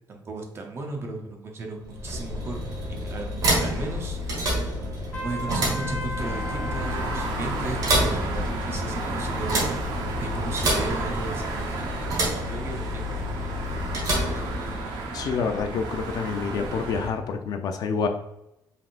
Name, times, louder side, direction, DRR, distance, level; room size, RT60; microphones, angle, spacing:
voice 1, 0.1-2.6 2.9-4.9 5.2-9.7 10.2-11.7 12.5-13.2, right 2 dB, 35° right, 2 dB, 0.8 m, -35 dB
sound 1, 1.8-15.1, equal, 55° right, 1.5 m, -29 dB
Trumpet, 5.1-7.4, equal, 30° left, 1.0 m, -35 dB
sound 2, 6.2-17.1, right 2 dB, 75° right, 0.9 m, -33 dB
voice 2, 15.1-18.1, left 5 dB, 55° left, 6 dB, 0.5 m, -27 dB
5.4 x 3.6 x 2.5 m, 0.86 s
cardioid pair, 175°, 8 cm